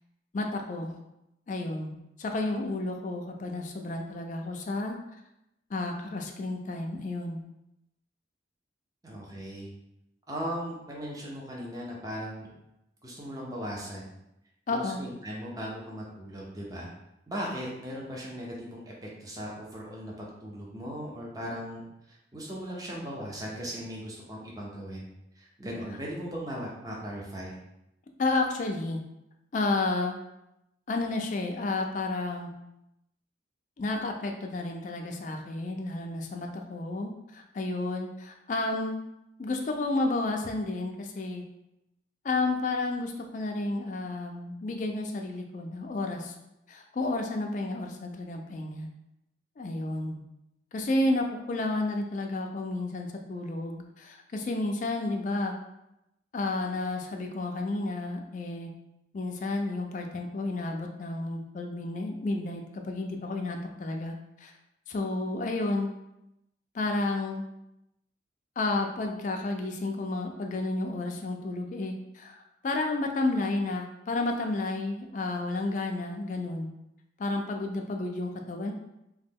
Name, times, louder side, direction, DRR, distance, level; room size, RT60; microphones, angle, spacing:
voice 1, 0.3-1.0 1.5-5.0 5.7-7.4 14.7-15.0 28.2-29.0 29.5-30.1 30.9-32.5 33.8-39.0 39.4-41.4 42.2-46.3 46.7-48.9 49.6-50.2 50.7-55.5 56.3-58.7 59.1-64.2 64.4-64.5 64.9-65.9 66.7-67.4 68.6-72.4 72.6-76.7 77.2-78.7, left 2 dB, 40° left, 3 dB, 0.3 m, -31 dB
voice 2, 9.0-9.7 10.3-12.5 13.0-14.0 14.7-16.9 17.3-18.9 19.2-21.8 22.1-25.1 25.4-27.5, equal, 20° right, -3 dB, 0.5 m, -38 dB
2.9 x 2.1 x 3.5 m, 0.87 s
head